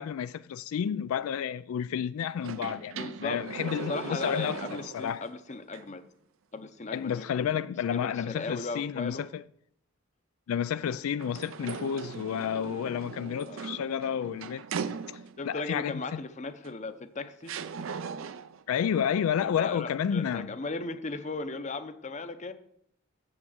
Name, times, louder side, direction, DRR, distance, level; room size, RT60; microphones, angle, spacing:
voice 1, 0.0-5.2 6.9-9.4 10.5-16.0 18.7-20.5, left 8 dB, 85° left, 0.3 m, -31 dB
sound 1, 2.4-5.3 5.7-5.8 11.2-15.5 16.7-16.8 17.5-18.6, right 5 dB, 70° right, 0.5 m, -39 dB
voice 2, 2.9-3.5 3.9-6.0 6.5-9.3 10.9-11.0 13.5-13.8 15.4-17.5 19.4-22.5, left 3 dB, 35° left, 0.7 m, -37 dB
7.4 x 6.2 x 7.9 m
head